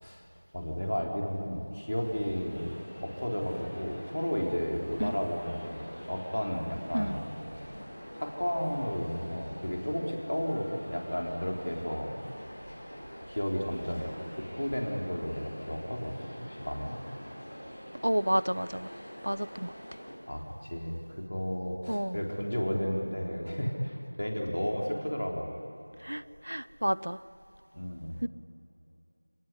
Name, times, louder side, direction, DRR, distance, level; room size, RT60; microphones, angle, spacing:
voice 1, 0.5-7.8 8.2-12.2 13.3-17.0 20.3-25.6 27.7-28.2, equal, 40° left, 4.0 m, -33 dB
sound 1, 1.8-20.1, equal, ahead, 2.6 m, -45 dB
voice 2, 18.0-18.9 19.2-19.7 21.9-22.2 26.0-27.2 28.2-28.3, equal, 65° right, 0.7 m, -30 dB
29.0 x 19.5 x 10.0 m
figure-of-eight pair, 180°, 0 cm